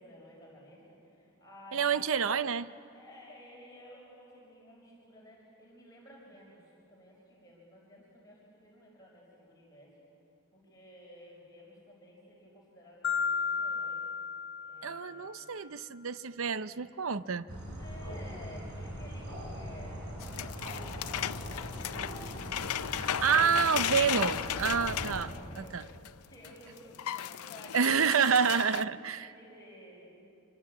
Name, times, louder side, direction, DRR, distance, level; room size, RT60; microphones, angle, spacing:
voice 1, 0.0-2.4 2.9-9.9 10.5-14.0 14.6-15.3 17.8-21.7 24.7-28.7 29.2-30.2, left 1 dB, 15° left, -4 dB, 5.5 m, -53 dB
voice 2, 1.7-2.7 14.8-17.5 23.0-25.3 25.6-25.8 27.7-29.3, right 6 dB, 65° right, 14 dB, 0.6 m, -28 dB
Marimba xylophone, 13.0-15.2, left 6 dB, 60° left, 1.9 m, -33 dB
sound 1, 17.5-25.2, equal, 85° right, 6.7 m, -41 dB
sound 2, 20.2-26.1 26.4-26.5 26.8-28.8, left 9 dB, 85° left, 0.6 m, -36 dB
26.5 x 25.0 x 8.5 m, 2.6 s
head